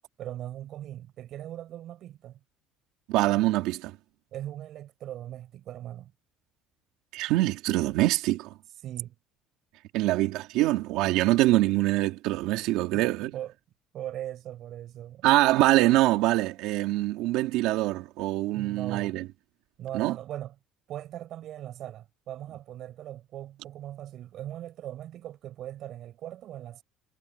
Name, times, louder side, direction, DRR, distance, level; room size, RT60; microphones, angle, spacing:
voice 1, 0.2-2.4 4.3-6.1 8.8-9.2 12.9-13.1 13.3-13.5 13.9-15.3 18.5-19.2 19.8-20.6 20.9-26.8, right 12 dB, 45° right, 7.1 m, -39 dB
voice 2, 3.1-3.9 7.1-8.5 9.9-13.3 15.2-19.2 19.9-20.1, right 17 dB, 70° right, 2.5 m, -24 dB
cardioid pair, 175°, 0 cm